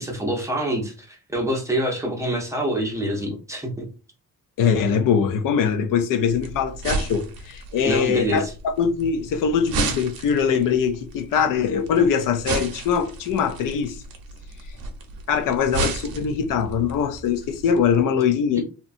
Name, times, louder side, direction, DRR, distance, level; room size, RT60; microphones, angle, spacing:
voice 1, 0.0-3.8 7.8-8.5 18.5-18.6, right 1 dB, 10° right, 0.6 m, -26 dB
voice 2, 4.6-14.0 15.3-18.6, left 7 dB, 65° left, 0.5 m, -22 dB
sound 1, 6.3-18.0, right 3 dB, 90° right, 0.7 m, -33 dB
2.8 x 2.2 x 2.5 m
cardioid pair, 145°, 35 cm